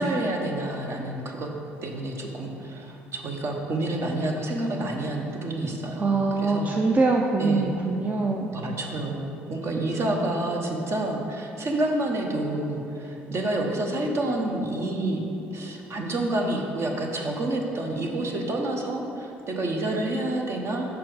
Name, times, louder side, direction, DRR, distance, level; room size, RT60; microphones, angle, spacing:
voice 1, 0.0-1.5 1.8-6.7 7.4-7.7 8.5-15.3 15.5-20.9, right 1 dB, 45° right, 1 dB, 0.9 m, -28 dB
voice 2, 6.0-8.5, right 3 dB, 30° right, 1 dB, 0.5 m, -23 dB
5.9 x 4.8 x 4.8 m, 2.9 s
hypercardioid pair, 60°, 6 cm